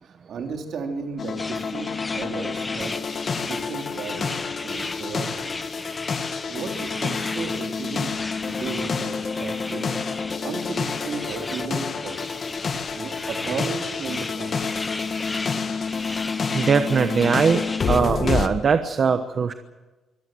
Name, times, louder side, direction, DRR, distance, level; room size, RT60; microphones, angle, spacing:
voice 1, 0.0-1.9 2.1-3.0 3.4-5.7 6.5-8.1 8.4-12.2 12.9-14.7, right 5 dB, 55° right, 4 dB, 3.4 m, -34 dB
sound 1, 1.2-18.5, left 5 dB, 40° left, 1.7 m, -29 dB
sound 2, 1.4-18.0, left 3 dB, 15° left, 1.0 m, -35 dB
voice 2, 16.5-19.5, right 6 dB, 40° right, 9 dB, 1.0 m, -21 dB
25.0 x 18.0 x 7.7 m, 1.2 s
cardioid pair, 155°, 0 cm